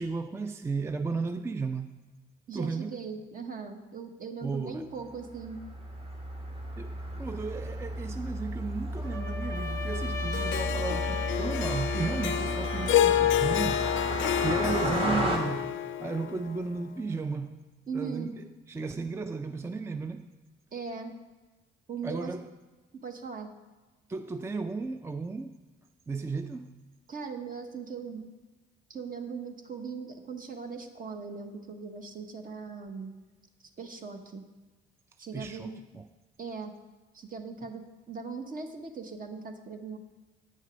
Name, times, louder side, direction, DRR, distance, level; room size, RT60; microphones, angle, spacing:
voice 1, 0.0-1.9 2.5-3.0 4.4-4.9 6.8-15.7 16.0-17.6 17.9-20.3 22.0-22.5 24.1-25.6 26.1-26.7 35.3-36.1, right 4 dB, 15° right, 0.3 m, -35 dB
voice 2, 2.5-5.6 17.9-18.3 20.7-21.1 21.9-22.3 23.0-23.5 27.1-28.3 28.9-33.1 33.8-34.4 35.2-35.7 36.4-36.7 37.1-40.0, right 5 dB, 45° right, 1.1 m, -39 dB
Car passing by, 5.2-15.4, right 1 dB, 30° right, 1.5 m, -33 dB
Trumpet, 9.0-13.9, left 3 dB, 15° left, 0.7 m, -38 dB
Harp, 10.3-16.7, left 12 dB, 80° left, 0.4 m, -29 dB
8.7 x 6.3 x 5.1 m
cardioid pair, 90°, 20 cm